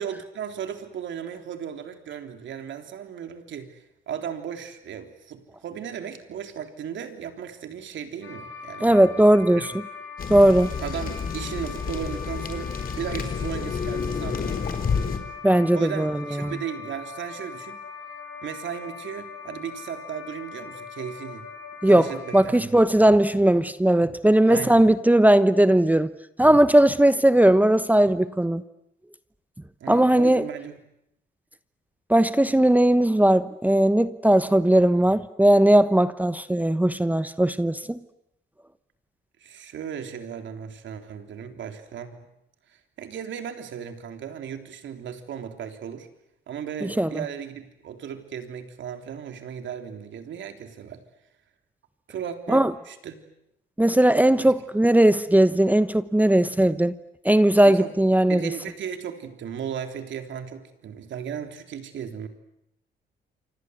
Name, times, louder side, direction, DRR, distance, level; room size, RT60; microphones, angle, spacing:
voice 1, 0.0-3.8 4.1-8.9 9.5-9.7 10.8-14.7 15.7-17.8 18.4-21.5 21.8-22.7 24.5-24.8 29.8-30.8 39.4-42.1 42.7-46.1 46.5-51.0 52.1-53.2 54.4-54.5 57.6-57.9 58.3-62.3, right 8 dB, 70° right, 3.5 m, -36 dB
sound 1, 8.2-22.4, left 5 dB, 80° left, 6.3 m, -40 dB
voice 2, 8.8-9.6 10.3-10.7 15.4-16.5 21.8-26.1 26.4-28.6 29.9-30.4 32.1-38.0 46.8-47.2 52.5-52.7 53.8-56.9 57.2-58.5, right 1 dB, 10° right, 1.0 m, -18 dB
sound 2, 10.2-15.2, left 6 dB, 45° left, 4.1 m, -30 dB
29.0 x 25.0 x 8.1 m
cardioid pair, 90°, 20 cm